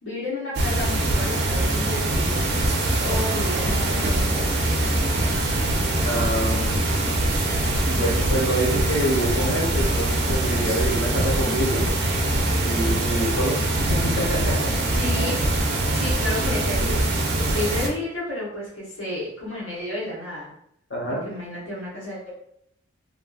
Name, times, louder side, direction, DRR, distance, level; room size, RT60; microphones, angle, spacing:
voice 1, 0.0-2.5 3.0-4.9 13.8-14.3 14.9-15.6 15.9-17.0 17.4-20.5 21.1-22.3, left 1 dB, 85° left, -7 dB, 1.0 m, -32 dB
sound 1, 0.5-17.9, right 1 dB, 50° right, 0.4 m, -23 dB
voice 2, 6.0-7.0 7.8-11.8 12.6-14.5 20.9-21.2, equal, 65° left, -3 dB, 0.9 m, -26 dB
2.6 x 2.3 x 2.3 m, 0.71 s
head